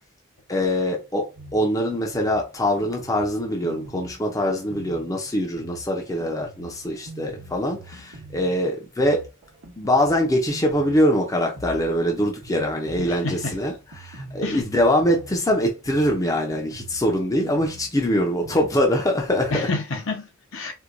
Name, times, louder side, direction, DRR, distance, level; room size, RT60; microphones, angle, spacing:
voice 1, 0.5-9.2 9.8-19.7, equal, 15° left, 0.5 m, -23 dB
Drum kit, 1.4-19.6, right 1 dB, 80° right, 0.9 m, -44 dB
voice 2, 13.0-13.5 14.4-14.6 19.5-20.7, left 3 dB, 60° left, 0.8 m, -29 dB
4.4 x 2.2 x 2.5 m
head